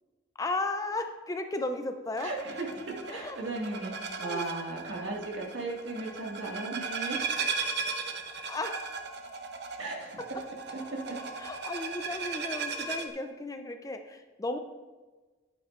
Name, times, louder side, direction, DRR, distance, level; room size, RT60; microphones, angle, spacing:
voice 1, 0.4-2.3 3.1-3.4 4.2-4.5 8.5-8.9 11.4-14.6, left 2 dB, 20° left, 7 dB, 0.5 m, -34 dB
sound 1, 2.2-13.1, right 4 dB, 60° right, 0.7 m, -37 dB
voice 2, 2.2-3.9 4.2-7.3 9.8-10.1 10.7-10.8 11.1-11.2, right 2 dB, 75° right, -2 dB, 1.8 m, -36 dB
10.5 x 8.6 x 2.5 m, 1.3 s
head